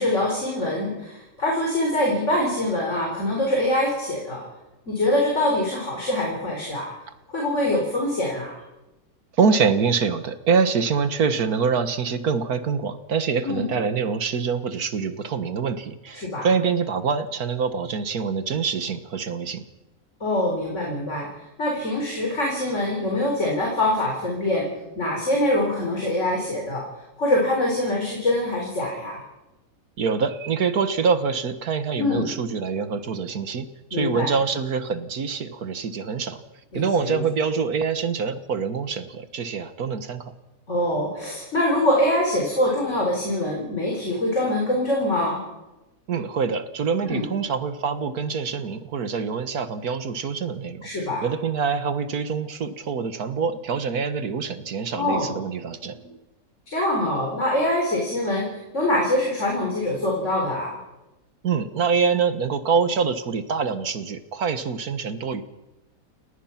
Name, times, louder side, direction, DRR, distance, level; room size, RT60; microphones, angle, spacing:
voice 1, 0.0-4.4 4.9-6.9 7.3-8.5 13.4-13.6 16.1-16.5 20.2-21.3 21.6-24.7 24.9-26.8 27.2-29.2 31.9-32.3 33.9-34.3 36.7-37.2 40.7-45.4 47.0-47.3 50.8-51.2 55.0-55.3 56.7-60.8, left 1 dB, 50° left, -1 dB, 4.7 m, -24 dB
voice 2, 9.4-19.6 30.0-36.4 36.7-40.3 46.1-50.9 51.2-56.2 61.4-65.4, right 5 dB, 70° right, 11 dB, 1.8 m, -25 dB
29.5 x 18.0 x 5.9 m, 1.0 s
omnidirectional pair, 1.6 m